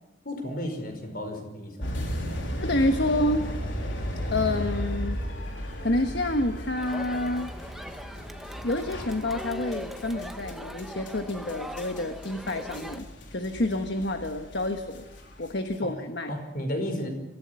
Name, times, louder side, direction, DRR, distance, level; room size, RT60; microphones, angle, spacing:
voice 1, 0.2-1.9 15.8-15.9 16.3-17.1, equal, 55° left, 5 dB, 5.5 m, -33 dB
sound 1, 1.8-15.7, equal, 90° left, 3.8 m, -35 dB
voice 2, 2.3-3.4 4.3-5.2 5.8-7.5 8.6-13.1 13.3-15.0 15.4-16.3, left 1 dB, 70° left, 6 dB, 1.4 m, -28 dB
Crowd, 6.8-13.0, equal, ahead, 1.2 m, -41 dB
25.0 x 15.5 x 8.4 m, 1.0 s
head